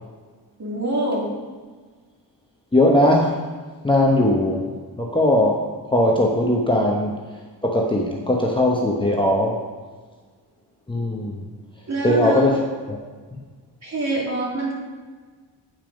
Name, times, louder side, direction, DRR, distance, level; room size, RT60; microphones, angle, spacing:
voice 1, 0.6-1.3 11.9-12.5 13.8-14.8, right 1 dB, 40° right, -4 dB, 2.7 m, -25 dB
voice 2, 2.7-3.3 3.8-4.7 5.0-5.6 5.9-7.2 7.6-9.6 10.9-11.4 12.0-12.6 12.9-13.0, left 1 dB, 10° left, -2 dB, 1.0 m, -19 dB
9.2 x 4.4 x 5.2 m, 1.4 s
cardioid pair, 75°, 42 cm